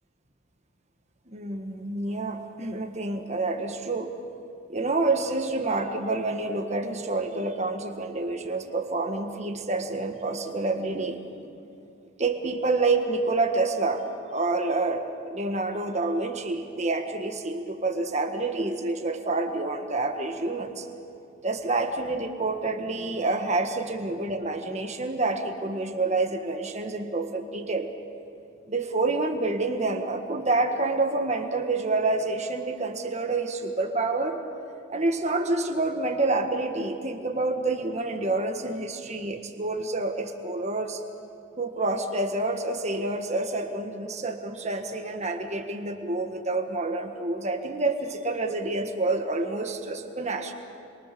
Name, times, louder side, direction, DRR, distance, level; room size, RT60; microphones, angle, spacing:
voice 1, 1.3-4.1 4.7-11.2 12.2-14.1 14.3-20.9 21.4-27.9 28.7-34.4 34.9-41.0 41.6-50.5, right 2 dB, 35° right, 5 dB, 1.6 m, -28 dB
27.5 x 23.0 x 6.8 m, 2.5 s
head